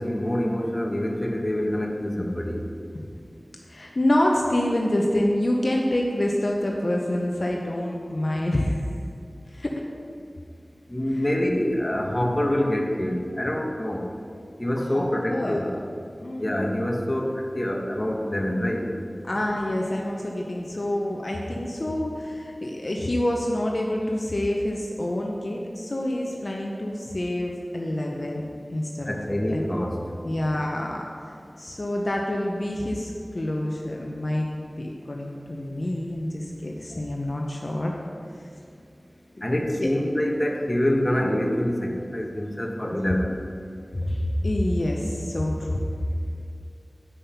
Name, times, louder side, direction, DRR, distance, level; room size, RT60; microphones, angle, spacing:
voice 1, 0.0-2.6 10.9-14.1 14.6-15.7 16.4-18.9 29.1-30.0 39.4-43.4, left 1 dB, 25° left, 0 dB, 1.2 m, -26 dB
voice 2, 3.7-8.9 9.5-9.7 14.9-15.6 16.2-16.8 19.2-28.4 28.7-29.6 30.2-31.1 31.6-34.5 34.8-37.9 39.8-39.9 43.9-45.8, left 1 dB, 55° left, -1 dB, 0.8 m, -27 dB
8.5 x 5.5 x 5.7 m, 2.4 s
wide cardioid pair, 45°, 0 cm